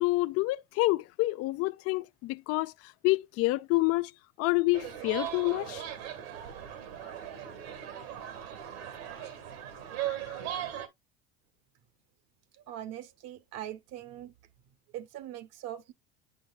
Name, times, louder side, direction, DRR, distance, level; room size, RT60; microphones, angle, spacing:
voice 1, 0.0-2.7 3.0-4.1 4.4-5.8, left 21 dB, 55° left, 0.5 m, -28 dB
sound 1, 4.7-10.9, right 11 dB, 80° right, 1.8 m, -38 dB
voice 2, 12.7-14.3 14.9-15.9, right 12 dB, 60° right, 1.0 m, -41 dB
8.5 x 5.8 x 2.4 m
supercardioid pair, 100°, 30 cm